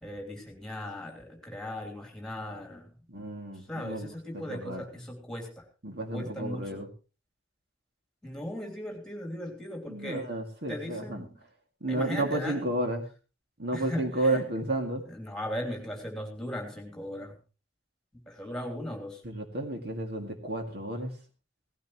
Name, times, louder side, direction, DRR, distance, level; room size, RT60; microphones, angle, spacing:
voice 1, 0.0-2.9 3.5-5.6 6.1-6.8 8.2-10.3 10.7-11.3 11.9-12.7 13.7-14.4 15.1-17.4 18.3-19.2, left 1 dB, 5° left, 3 dB, 3.1 m, -38 dB
voice 2, 3.1-4.8 5.8-6.9 9.9-11.3 11.8-13.0 13.6-15.0 19.2-21.1, right 1 dB, 55° right, 4 dB, 2.3 m, -32 dB
17.5 x 15.0 x 3.0 m, 0.33 s
head